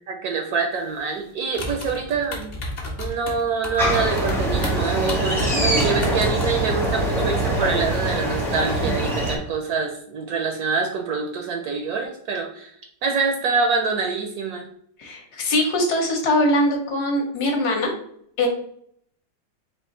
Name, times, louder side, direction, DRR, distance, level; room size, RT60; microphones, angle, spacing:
voice 1, 0.1-2.5 3.0-12.8 13.0-14.7, right 5 dB, 70° right, 3 dB, 0.9 m, -25 dB
sound 1, 1.5-6.5, left 2 dB, 40° left, 1.0 m, -31 dB
sound 2, 3.8-9.4, right 1 dB, 5° left, 0.5 m, -23 dB
voice 2, 15.0-17.9 18.4-18.5, left 1 dB, 65° left, 1 dB, 1.3 m, -22 dB
4.4 x 2.5 x 3.7 m, 0.67 s
omnidirectional pair, 2.0 m